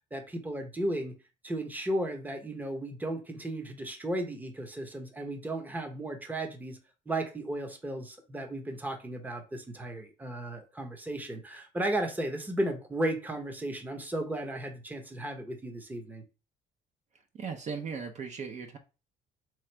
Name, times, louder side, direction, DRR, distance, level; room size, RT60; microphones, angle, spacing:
voice 1, 0.1-1.2 1.4-6.8 7.1-16.2, right 1 dB, 10° right, 0.8 m, -34 dB
voice 2, 17.3-18.8, right 5 dB, 45° right, 0.7 m, -37 dB
3.1 x 2.5 x 4.4 m
cardioid pair, 110°, 17 cm